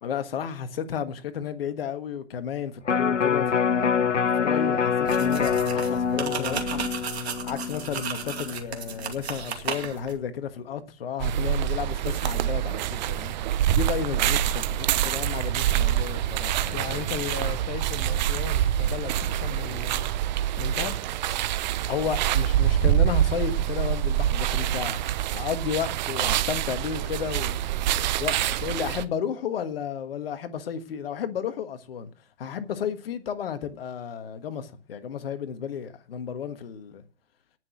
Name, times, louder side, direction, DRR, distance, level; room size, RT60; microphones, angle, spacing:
voice 1, 0.0-6.8 7.4-13.3 13.7-16.8 21.9-27.5 27.9-32.1 32.4-37.0, left 8 dB, 55° left, 1.6 m, -32 dB
Electric guitar, 2.8-9.1 9.5-9.6, left 6 dB, 80° left, 0.8 m, -26 dB
sound 1, 5.1-10.2, right 6 dB, 60° right, 2.6 m, -34 dB
sound 2, 11.2-29.0, right 11 dB, 40° right, 0.9 m, -26 dB
voice 2, 16.7-20.1 20.6-21.0, left 10 dB, 20° left, 0.8 m, -36 dB
19.0 x 6.4 x 6.2 m
figure-of-eight pair, 115°, 36 cm